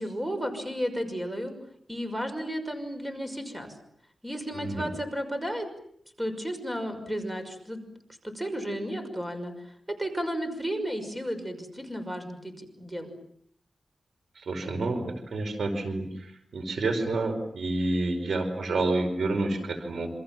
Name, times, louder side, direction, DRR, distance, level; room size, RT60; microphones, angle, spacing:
voice 1, 0.0-1.5 1.9-3.8 4.2-5.7 6.2-7.8 8.2-13.1, equal, 10° right, 7 dB, 5.9 m, -33 dB
voice 2, 4.5-4.9 14.3-20.1, right 2 dB, 80° right, 6 dB, 5.1 m, -29 dB
28.5 x 27.5 x 7.5 m, 0.68 s
wide cardioid pair, 90°, 0 cm